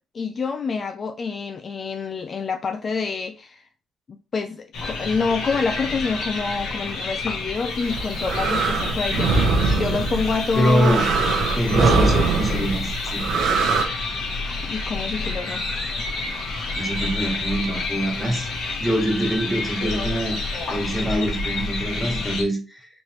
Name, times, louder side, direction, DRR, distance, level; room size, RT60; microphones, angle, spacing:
voice 1, 0.1-3.7 4.3-11.1 14.4-15.7, left 5 dB, 45° left, 0.3 m, -27 dB
sound 1, 4.7-22.4, left 3 dB, 80° left, 1.3 m, -29 dB
sound 2, 7.8-13.8, right 4 dB, 80° right, 0.8 m, -22 dB
voice 2, 10.6-11.1 11.6-13.4 16.5-20.4 20.7-22.9, equal, 15° left, 1.7 m, -24 dB
4.1 x 3.1 x 2.9 m
cardioid pair, 90°, 0 cm